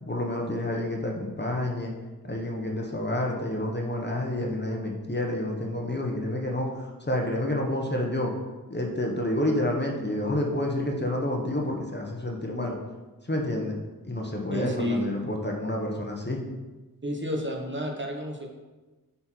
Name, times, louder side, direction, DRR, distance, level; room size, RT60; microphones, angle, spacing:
voice 1, 0.0-1.9 2.2-8.3 8.7-12.7 13.3-13.7 14.1-16.4, left 1 dB, 30° left, 0 dB, 1.3 m, -29 dB
voice 2, 14.5-15.0 17.0-18.5, left 1 dB, 30° right, 0 dB, 1.2 m, -30 dB
7.8 x 4.3 x 4.6 m, 1.2 s
cardioid pair, 45°, 37 cm